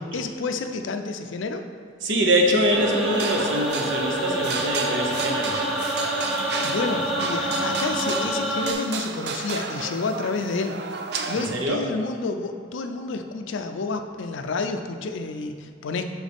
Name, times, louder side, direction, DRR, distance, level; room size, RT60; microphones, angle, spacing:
voice 1, 0.0-1.6 6.6-10.8 11.3-16.0, left 3 dB, 75° left, 7 dB, 0.4 m, -29 dB
voice 2, 2.0-5.5 11.5-11.8, equal, 75° right, 1 dB, 0.9 m, -23 dB
sound 1, 2.7-8.7, right 1 dB, ahead, 0.6 m, -27 dB
sound 2, 3.1-11.7, right 4 dB, 55° right, 0.4 m, -33 dB
6.3 x 5.9 x 3.5 m, 2.1 s
head